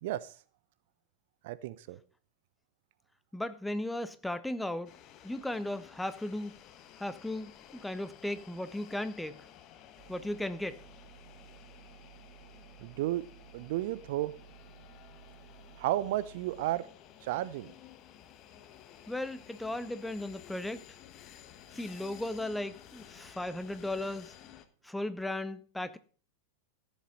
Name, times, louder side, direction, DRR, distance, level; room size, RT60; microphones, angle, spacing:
voice 1, 0.0-0.3 1.4-2.0 12.8-13.2 13.5-14.3 15.8-16.9 17.2-17.7, right 15 dB, 50° right, 0.6 m, -33 dB
voice 2, 3.3-4.9 5.2-6.5 7.0-9.5 10.1-10.8 19.1-20.9 21.7-24.3 24.8-26.0, left 1 dB, 5° left, 0.8 m, -36 dB
sound 1, 4.9-24.7, left 10 dB, 35° left, 1.2 m, -54 dB
sound 2, 10.0-16.7, right 7 dB, 35° right, 2.3 m, -55 dB
14.0 x 7.2 x 5.2 m
figure-of-eight pair, 90°, 0 cm